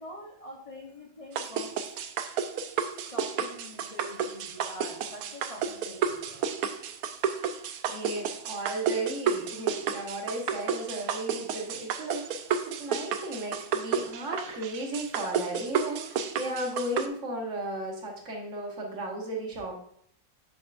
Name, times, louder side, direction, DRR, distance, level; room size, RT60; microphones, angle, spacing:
voice 1, 0.0-2.1 3.0-6.5, equal, 50° left, -1 dB, 0.4 m, -45 dB
sound 1, 1.4-17.1, right 7 dB, 70° right, 0.9 m, -31 dB
voice 2, 7.9-19.8, right 1 dB, 45° right, 0 dB, 1.5 m, -35 dB
7.0 x 5.9 x 2.5 m, 0.67 s
omnidirectional pair, 2.0 m